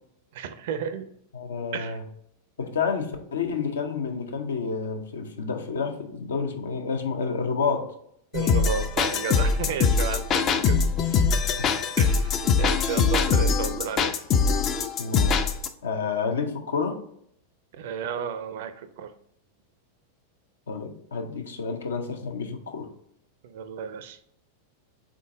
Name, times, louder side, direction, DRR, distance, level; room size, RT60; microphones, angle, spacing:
voice 1, 0.3-1.1 1.7-2.0 8.3-10.8 11.1-11.2 12.0-14.1 17.7-19.1 23.4-24.2, right 7 dB, 55° right, 11 dB, 0.4 m, -33 dB
voice 2, 1.3-2.0 2.6-7.9 11.6-11.7 15.0-15.4 15.8-17.0 20.7-22.9, left 5 dB, 65° left, 5 dB, 0.6 m, -29 dB
sound 1, 8.3-15.7, left 5 dB, 30° left, 0.4 m, -22 dB
3.8 x 3.8 x 3.5 m, 0.71 s
figure-of-eight pair, 90°, 0 cm